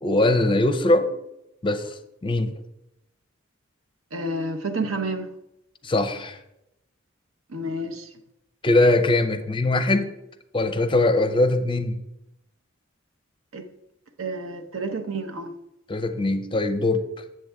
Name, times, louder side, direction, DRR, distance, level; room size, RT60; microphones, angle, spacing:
voice 1, 0.0-1.1 1.6-1.9 2.2-2.5 5.8-6.4 8.6-10.1 10.5-12.0 15.9-17.0, left 2 dB, 25° left, 0.5 m, -21 dB
voice 2, 4.1-5.3 7.5-8.1 13.5-13.7 14.2-15.5, right 2 dB, 75° right, 0.8 m, -30 dB
7.7 x 7.5 x 3.4 m
head